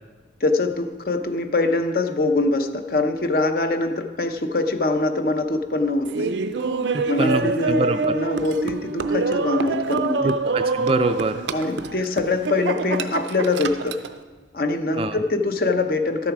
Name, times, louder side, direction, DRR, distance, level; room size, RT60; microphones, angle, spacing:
voice 1, 0.4-6.3 7.0-10.3 11.5-14.0 14.5-16.3, left 2 dB, 55° left, 7 dB, 0.7 m, -23 dB
Laughter, 6.0-14.1, right 4 dB, 90° right, 0.5 m, -26 dB
voice 2, 7.2-8.1 10.2-11.4 15.0-15.2, right 3 dB, 30° right, 7 dB, 0.3 m, -24 dB
12.5 x 7.2 x 4.8 m, 1.4 s
head